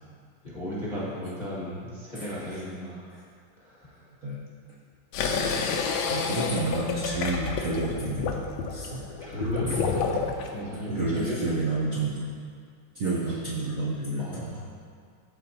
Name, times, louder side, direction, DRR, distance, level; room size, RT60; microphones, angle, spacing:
voice 1, 0.4-3.1 3.6-4.1 9.2-11.4 13.3-13.4 14.2-14.6, equal, 30° left, -8 dB, 0.9 m, -35 dB
sound 1, 5.1-10.5, left 5 dB, 75° left, 1.3 m, -29 dB
voice 2, 6.1-9.1 9.7-9.8 10.7-12.2 12.9-14.6, right 2 dB, 60° right, -6 dB, 0.9 m, -30 dB
12.5 x 4.3 x 2.7 m, 2.1 s
omnidirectional pair, 2.3 m